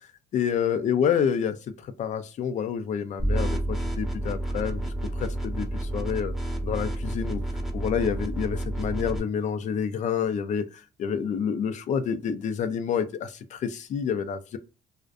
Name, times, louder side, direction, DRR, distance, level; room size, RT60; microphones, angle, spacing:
voice 1, 0.3-6.3 6.6-7.4 7.7-14.6, left 7 dB, 45° left, 0.4 m, -28 dB
sound 1, 3.2-9.2, right 1 dB, ahead, 0.6 m, -30 dB
2.5 x 2.1 x 2.4 m
cardioid pair, 110°, 17 cm